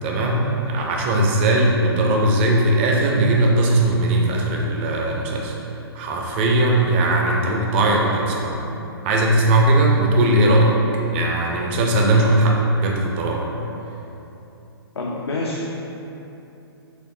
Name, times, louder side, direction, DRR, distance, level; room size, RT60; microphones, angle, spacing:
voice 1, 0.0-5.5 5.9-8.6 9.0-10.8 11.1-13.6, right 1 dB, 25° right, -1 dB, 0.4 m, -19 dB
voice 2, 15.0-15.7, left 2 dB, 75° left, -3 dB, 0.4 m, -27 dB
4.3 x 2.5 x 2.5 m, 2.9 s
figure-of-eight pair, 125°, 13 cm